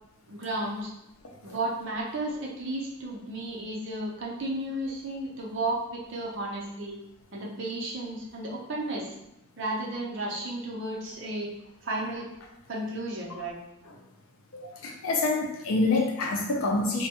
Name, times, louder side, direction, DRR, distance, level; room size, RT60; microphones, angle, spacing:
voice 1, 0.3-0.9 1.4-7.0 7.3-9.1 9.6-11.5 11.8-12.3 12.7-13.6, right 1 dB, 60° right, -3 dB, 0.6 m, -33 dB
voice 2, 14.5-17.1, left 3 dB, 90° left, 1 dB, 0.5 m, -27 dB
2.2 x 2.1 x 2.8 m, 0.89 s
head